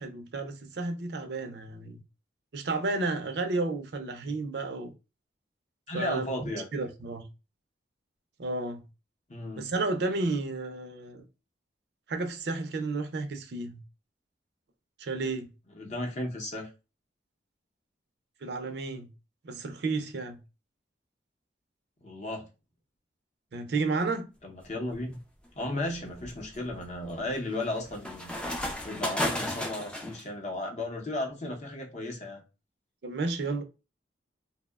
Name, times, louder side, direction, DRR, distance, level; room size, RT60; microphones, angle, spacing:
voice 1, 0.0-2.0 2.5-4.9 5.9-7.3 8.4-8.8 9.6-11.2 12.1-13.8 15.0-15.5 18.4-19.1 19.4-20.4 23.5-24.3 33.0-33.6, right 3 dB, 60° right, 0.4 m, -32 dB
voice 2, 5.9-6.7 9.3-9.6 15.7-16.7 22.0-22.4 24.4-25.2 25.6-32.4, left 1 dB, 40° left, 0.7 m, -35 dB
sound 1, 24.7-25.0 25.6-30.2, left 1 dB, 5° left, 0.3 m, -34 dB
2.8 x 2.1 x 2.2 m
head